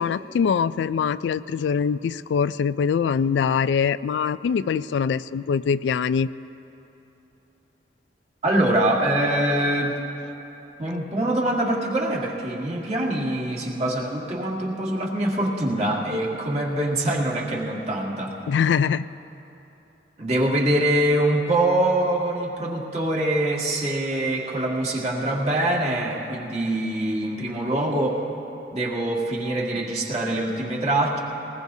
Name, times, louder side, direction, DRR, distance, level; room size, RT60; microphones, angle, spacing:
voice 1, 0.0-6.3 18.5-19.1, left 6 dB, 85° left, 15 dB, 0.3 m, -23 dB
voice 2, 8.4-10.0 10.8-18.4 20.2-28.2 28.7-31.2, right 1 dB, 40° right, -3 dB, 1.7 m, -24 dB
21.0 x 19.5 x 2.7 m, 3.0 s
head